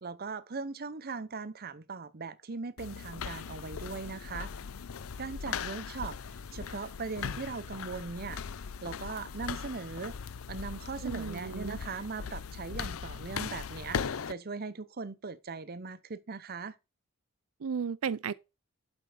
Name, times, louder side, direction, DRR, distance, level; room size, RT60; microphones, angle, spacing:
voice 1, 0.0-4.5 5.2-6.2 6.5-8.4 8.8-10.2 10.5-16.7, right 4 dB, 45° right, 0.7 m, -39 dB
sound 1, 2.8-14.3, left 6 dB, 80° left, 0.6 m, -39 dB
voice 2, 11.0-11.8 17.6-18.3, right 6 dB, 80° right, 0.5 m, -34 dB
7.8 x 5.2 x 6.5 m
head